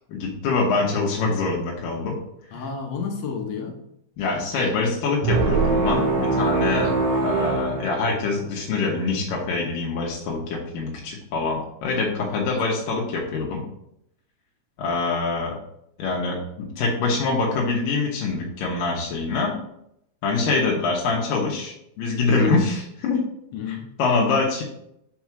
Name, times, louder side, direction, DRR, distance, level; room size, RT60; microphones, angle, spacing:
voice 1, 0.1-2.2 2.5-2.6 4.2-6.9 7.2-13.6 14.8-15.6 16.0-19.5 20.2-23.2 23.7-24.6, left 3 dB, 85° left, -2 dB, 2.8 m, -24 dB
voice 2, 2.5-3.8 6.7-6.9 12.3-12.5 23.5-23.9, left 6 dB, 65° left, 3 dB, 1.9 m, -31 dB
sound 1, 5.2-8.6, right 3 dB, 60° right, 1.7 m, -23 dB
6.1 x 4.7 x 5.9 m, 0.77 s
omnidirectional pair, 3.7 m